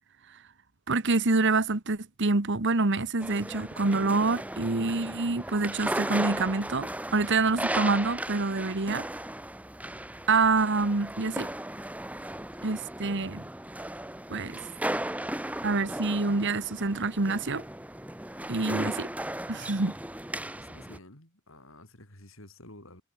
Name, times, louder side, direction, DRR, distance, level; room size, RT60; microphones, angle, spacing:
voice 1, 0.9-9.1 10.3-11.5 12.6-13.4 14.3-14.6 15.6-17.6 18.5-19.1 19.5-19.9, right 3 dB, 60° right, 1.4 m, -26 dB
sound 1, 3.2-21.0, right 1 dB, 5° right, 2.7 m, -36 dB
voice 2, 20.6-23.0, left 1 dB, 70° left, 6.9 m, -51 dB
head